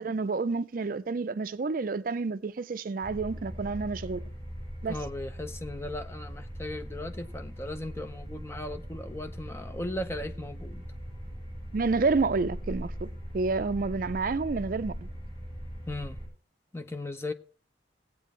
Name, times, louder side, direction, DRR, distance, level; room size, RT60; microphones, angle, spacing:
voice 1, 0.0-4.2 4.8-5.0 11.7-13.1 13.3-15.1, right 4 dB, 50° right, 0.4 m, -29 dB
sound 1, 3.0-16.3, equal, 30° left, 6.9 m, -40 dB
voice 2, 4.9-10.8 15.9-16.2 16.7-17.3, left 1 dB, 15° left, 0.6 m, -37 dB
17.5 x 8.3 x 3.2 m
head